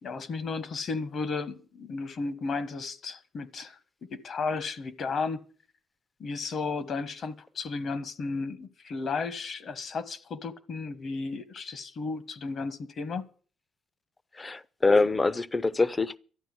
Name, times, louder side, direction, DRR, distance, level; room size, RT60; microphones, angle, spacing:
voice 1, 0.0-3.8 4.1-5.4 6.2-13.3, left 4 dB, 55° left, 1.3 m, -34 dB
voice 2, 14.4-16.2, left 3 dB, 25° left, 0.6 m, -24 dB
12.5 x 9.1 x 8.0 m
cardioid pair, 90°, 0 cm